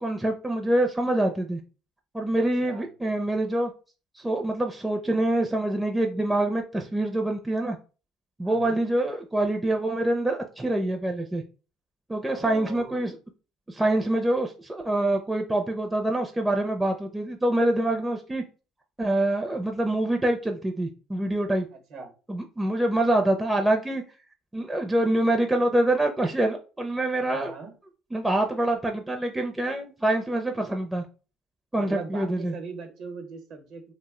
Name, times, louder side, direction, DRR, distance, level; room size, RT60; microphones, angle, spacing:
voice 1, 0.0-1.6 2.1-3.7 4.2-7.8 8.4-11.4 12.1-13.1 13.7-18.4 19.0-21.7 22.3-24.0 24.5-27.5 28.1-31.0 31.7-32.5, right 1 dB, 10° right, 3 dB, 0.4 m, -25 dB
voice 2, 8.4-8.8 12.3-13.2 21.7-22.1 27.3-27.7 31.8-33.9, right 4 dB, 65° right, 5 dB, 0.8 m, -40 dB
2.5 x 2.1 x 3.6 m, 0.35 s
supercardioid pair, 80°, 0 cm